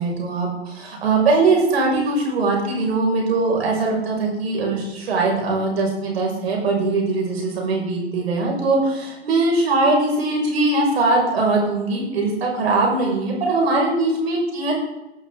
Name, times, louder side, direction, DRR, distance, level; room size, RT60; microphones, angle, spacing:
voice 1, 0.0-14.8, right 3 dB, 60° right, 0 dB, 6.2 m, -21 dB
18.0 x 13.0 x 3.9 m, 0.97 s
figure-of-eight pair, 95°, 34 cm